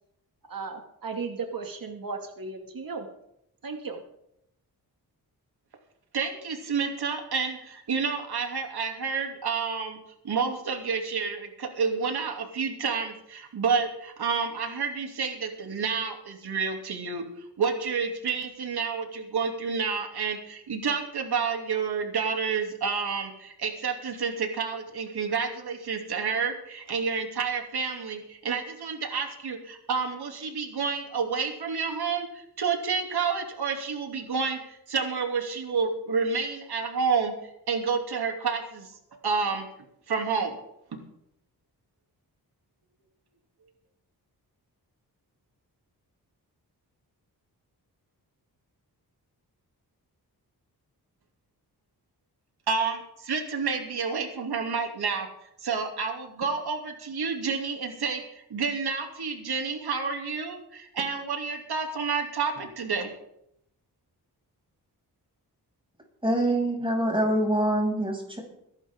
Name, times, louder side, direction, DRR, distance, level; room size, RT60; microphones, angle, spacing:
voice 1, 0.5-3.1 3.6-4.0, right 4 dB, 55° right, 4 dB, 2.3 m, -35 dB
voice 2, 6.1-10.0 10.2-17.2 17.6-37.3 37.7-38.9 39.2-39.7 40.1-40.6 40.9-41.0 52.7-55.3 55.6-63.1, right 5 dB, 75° right, 3 dB, 2.9 m, -29 dB
voice 3, 66.2-68.4, right 1 dB, 15° right, 0 dB, 6.9 m, -25 dB
22.0 x 11.5 x 3.7 m, 0.78 s
cardioid pair, 65°, 39 cm